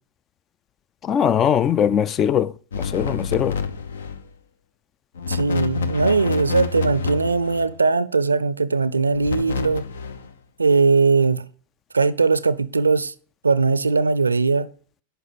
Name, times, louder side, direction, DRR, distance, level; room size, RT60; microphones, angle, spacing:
voice 1, 1.0-3.6, left 9 dB, 30° left, 0.4 m, -21 dB
sound 1, 2.7-4.3 5.1-7.8 9.1-10.3, left 5 dB, 65° left, 0.6 m, -28 dB
voice 2, 5.3-9.8 10.6-11.4 11.9-13.1 13.4-14.7, right 4 dB, 80° right, 0.5 m, -19 dB
10.0 x 5.5 x 3.9 m
figure-of-eight pair, 90°, 0 cm